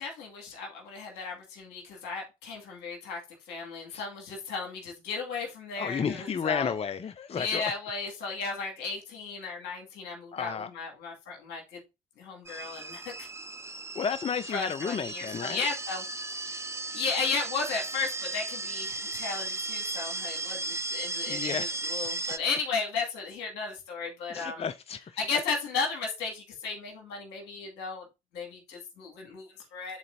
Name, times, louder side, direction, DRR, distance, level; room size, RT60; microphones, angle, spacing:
voice 1, 0.0-3.2 3.5-6.7 7.4-11.8 12.2-13.3 14.5-16.0 16.3-16.6 16.9-24.6 25.2-28.0 28.3-30.0, left 4 dB, 75° left, 2.2 m, -35 dB
voice 2, 5.8-7.7 10.3-10.7 13.9-15.7 21.3-22.3 24.3-25.2, left 6 dB, 35° left, 0.5 m, -33 dB
sound 1, 12.5-22.4, right 3 dB, 15° right, 0.5 m, -36 dB
10.5 x 4.0 x 2.7 m
hypercardioid pair, 50°, 18 cm